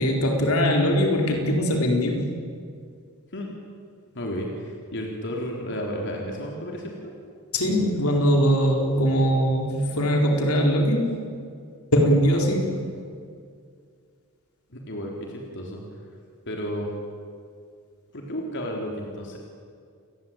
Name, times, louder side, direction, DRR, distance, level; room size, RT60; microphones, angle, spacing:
voice 1, 0.0-2.3 7.5-11.2 11.9-12.8, equal, 70° left, 1 dB, 4.4 m, -21 dB
voice 2, 4.1-7.1 14.7-15.8 16.5-16.9 18.1-19.4, equal, 55° left, 0 dB, 3.9 m, -32 dB
29.0 x 20.5 x 9.0 m, 2.2 s
head